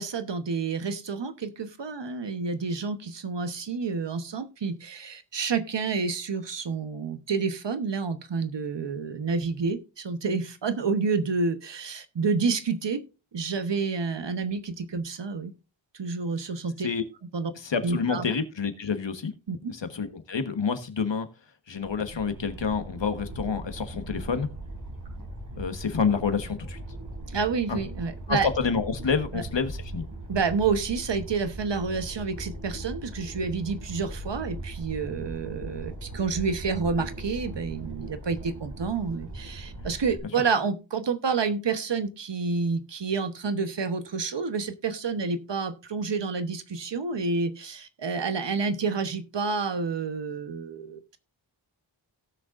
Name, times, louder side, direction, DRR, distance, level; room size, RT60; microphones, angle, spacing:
voice 1, 0.0-13.0 13.3-15.5 15.9-16.9 17.3-17.5 17.8-18.3 19.5-19.7 27.3-28.5 29.3-29.4 30.3-51.2, right 4 dB, 65° right, 10 dB, 1.1 m, -29 dB
voice 2, 17.5-19.3 19.7-21.3 21.7-24.5 25.6-26.8 27.7-27.8 28.3-30.0 40.2-40.3, left 5 dB, 70° left, 9 dB, 1.3 m, -28 dB
sound 1, 21.8-40.2, right 2 dB, 45° right, 3.4 m, -39 dB
17.5 x 6.3 x 2.5 m, 0.31 s
wide cardioid pair, 85°, 45 cm